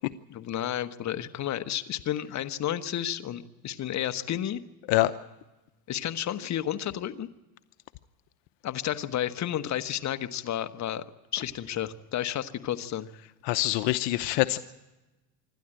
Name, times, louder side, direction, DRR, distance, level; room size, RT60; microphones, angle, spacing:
voice 1, 0.3-4.6 5.9-7.3 8.6-11.0 11.3-13.1, left 11 dB, 35° left, 9 dB, 1.2 m, -31 dB
voice 2, 13.4-14.6, left 17 dB, 65° left, 12 dB, 0.9 m, -24 dB
26.0 x 12.5 x 8.9 m, 1.1 s
supercardioid pair, 120°, 47 cm